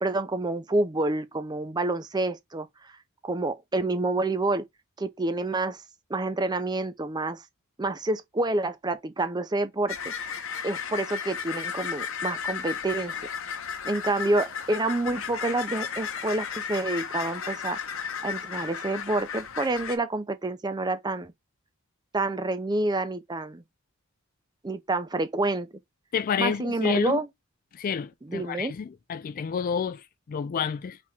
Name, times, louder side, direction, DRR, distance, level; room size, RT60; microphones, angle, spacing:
voice 1, 0.0-2.9 3.2-4.7 5.0-5.8 6.1-7.4 7.8-10.1 10.6-13.2 13.8-17.8 18.2-21.3 22.1-23.6 24.6-25.7 26.4-27.3 28.2-28.7, right 2 dB, 20° right, 0.5 m, -28 dB
sound 1, 9.9-20.0, left 7 dB, 65° left, 0.8 m, -34 dB
voice 2, 26.1-27.2 27.7-31.0, left 6 dB, 40° left, 0.3 m, -29 dB
4.3 x 3.1 x 3.5 m
head